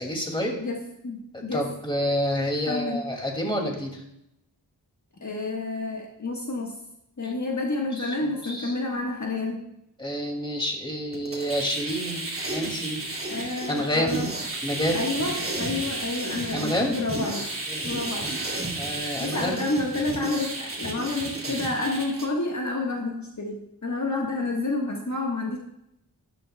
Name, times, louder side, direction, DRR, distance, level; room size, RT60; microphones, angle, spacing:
voice 1, 0.0-0.5 1.3-4.0 7.2-7.3 7.9-8.7 10.0-13.1 13.7-14.3 14.6-15.0 16.5-17.0 17.7-17.9 18.8-19.6 21.5-21.6, equal, 15° left, 1 dB, 2.5 m, -29 dB
voice 2, 0.6-1.7 2.7-3.0 5.2-6.7 7.2-9.6 13.3-14.3 14.9-17.5 17.8-18.3 19.2-25.6, left 2 dB, 50° left, -1 dB, 1.5 m, -29 dB
sound 1, 11.1-22.3, right 2 dB, 35° right, 2.5 m, -33 dB
13.0 x 12.5 x 2.3 m, 0.81 s
wide cardioid pair, 90°, 38 cm